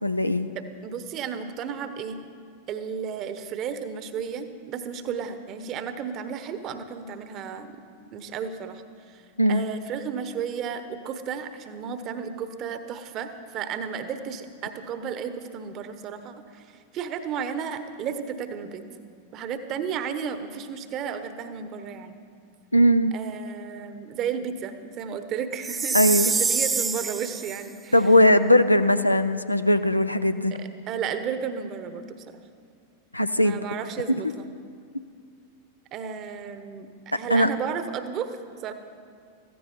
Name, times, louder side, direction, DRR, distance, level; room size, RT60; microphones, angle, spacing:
voice 1, 0.0-0.5 9.4-9.7 22.7-23.1 25.9-26.3 27.9-30.6 33.1-33.6 37.3-37.5, left 1 dB, 85° left, 11 dB, 0.5 m, -19 dB
voice 2, 0.5-2.2 2.7-7.8 8.1-8.8 9.1-9.2 9.5-16.6 16.9-18.8 19.3-22.2 23.1-28.0 30.5-32.4 33.4-34.5 35.9-38.4 38.6-38.7, right 7 dB, 35° right, 10 dB, 1.0 m, -33 dB
Chime, 25.6-27.6, right 5 dB, 15° right, 0.4 m, -26 dB
15.5 x 14.5 x 4.4 m, 2.3 s
figure-of-eight pair, 90°, 0 cm